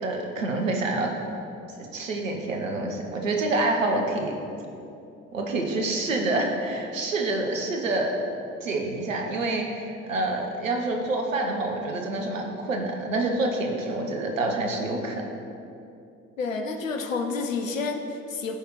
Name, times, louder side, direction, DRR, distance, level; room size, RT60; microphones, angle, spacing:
voice 1, 0.0-1.1 1.8-4.3 5.3-8.1 8.6-15.2, right 2 dB, 85° right, 2 dB, 0.8 m, -27 dB
voice 2, 16.4-18.6, left 4 dB, 85° left, 5 dB, 0.6 m, -29 dB
13.5 x 4.9 x 3.1 m, 2.7 s
figure-of-eight pair, 50°, 38 cm